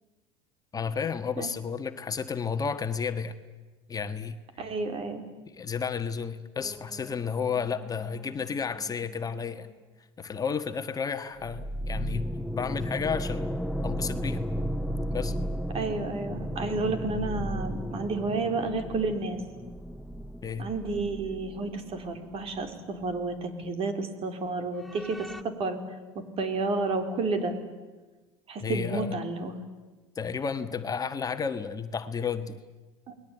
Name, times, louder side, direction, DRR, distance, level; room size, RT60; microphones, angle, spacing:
voice 1, 0.7-3.3 3.9-4.3 5.5-9.7 10.2-12.3 12.5-13.5 13.8-14.4 15.1-15.4 20.4-20.7 28.6-29.2 30.1-32.6, left 6 dB, 25° left, 8 dB, 1.5 m, -32 dB
voice 2, 4.6-5.2 15.7-19.4 20.6-25.2 25.4-25.8 26.1-27.5 28.5-29.6 33.1-33.2, right 3 dB, 45° right, 8 dB, 4.2 m, -31 dB
sound 1, 6.6-9.4 11.4-22.8 23.0-23.1 24.8-25.4, equal, ahead, 1.0 m, -35 dB
29.0 x 20.5 x 9.2 m, 1.2 s
hypercardioid pair, 90°, 14 cm